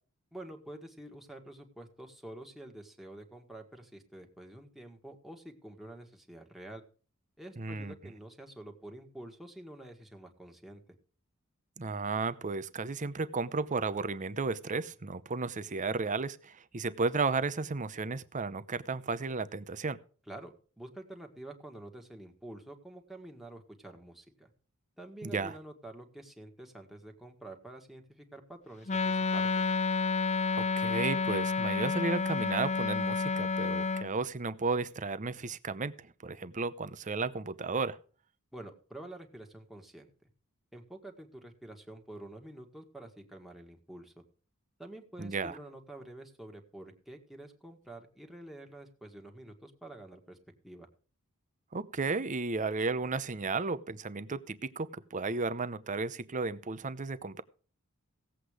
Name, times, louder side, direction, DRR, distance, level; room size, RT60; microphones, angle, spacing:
voice 1, 0.3-6.8 7.4-10.8 20.3-24.5 25.0-29.6 38.5-40.1 40.7-44.2 44.8-50.4 50.6-50.9, right 1 dB, ahead, 1.8 m, -48 dB
voice 2, 7.6-7.9 11.8-20.0 25.2-25.6 30.6-38.0 45.2-45.6 51.7-57.4, right 4 dB, 35° right, 0.7 m, -33 dB
Wind instrument woodwind instrument, 28.9-34.1, left 4 dB, 30° left, 0.6 m, -30 dB
17.0 x 8.1 x 4.9 m
head